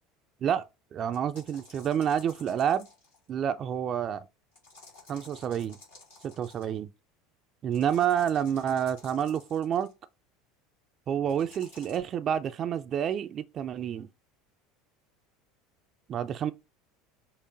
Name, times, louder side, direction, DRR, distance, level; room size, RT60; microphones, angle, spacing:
voice 1, 0.9-2.9 3.3-4.3 5.1-5.8 6.2-6.9 7.6-9.9 11.1-14.1 16.1-16.5, right 9 dB, 40° right, 0.4 m, -29 dB
sound 1, 1.1-3.3 4.6-6.8 7.7-9.9 11.3-12.0, left 3 dB, 80° left, 2.2 m, -53 dB
5.8 x 2.1 x 3.9 m
hypercardioid pair, 75°, 0 cm